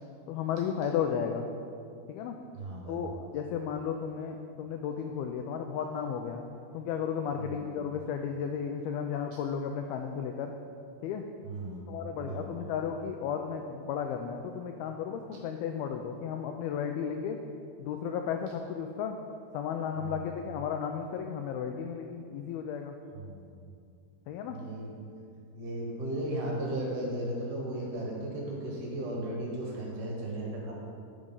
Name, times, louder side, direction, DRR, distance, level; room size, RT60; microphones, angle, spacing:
voice 1, 0.3-1.5 2.1-2.4 2.9-6.5 6.7-10.6 11.0-11.2 11.9-17.4 17.8-19.2 19.5-23.0 24.3-24.6, left 7 dB, 85° left, 4 dB, 2.2 m, -34 dB
voice 2, 2.5-3.0 7.4-7.6 11.4-11.9 12.2-12.6 20.0-20.2 23.1-23.5 24.5-24.9 25.5-30.7, right 1 dB, 70° right, -3 dB, 3.1 m, -36 dB
10.5 x 4.9 x 5.4 m, 2.4 s
omnidirectional pair, 4.9 m